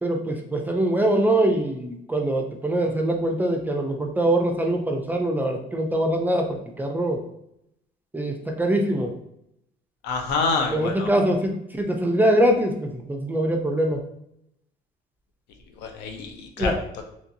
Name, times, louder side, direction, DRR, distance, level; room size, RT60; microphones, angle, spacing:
voice 1, 0.0-7.2 8.1-9.1 10.7-14.0 16.6-16.8, right 1 dB, 10° right, 3 dB, 0.4 m, -23 dB
voice 2, 10.0-11.1 15.8-17.0, left 4 dB, 85° left, 4 dB, 0.6 m, -27 dB
2.9 x 2.6 x 2.6 m, 0.78 s
cardioid pair, 110°, 17 cm